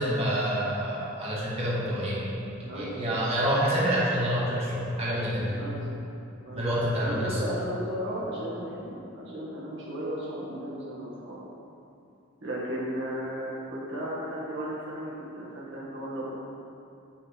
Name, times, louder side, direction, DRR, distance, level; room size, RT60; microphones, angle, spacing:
voice 1, 0.0-5.6 6.6-7.4, equal, 30° right, -8 dB, 1.3 m, -27 dB
voice 2, 2.6-2.9 5.5-5.8 6.4-6.6 6.9-11.4 12.4-16.3, equal, 65° right, -6 dB, 1.4 m, -35 dB
8.6 x 3.3 x 4.8 m, 2.6 s
head